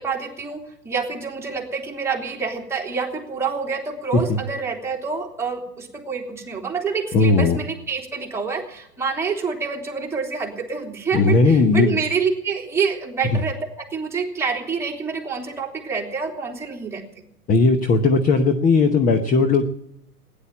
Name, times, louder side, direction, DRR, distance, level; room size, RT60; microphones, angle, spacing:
voice 1, 0.0-17.2, right 5 dB, 5° right, -2 dB, 3.0 m, -27 dB
voice 2, 7.1-7.6 11.1-12.0 13.3-13.4 17.5-19.7, left 3 dB, 20° left, 7 dB, 0.9 m, -17 dB
17.0 x 10.5 x 7.1 m, 0.79 s
hypercardioid pair, 115°, 47 cm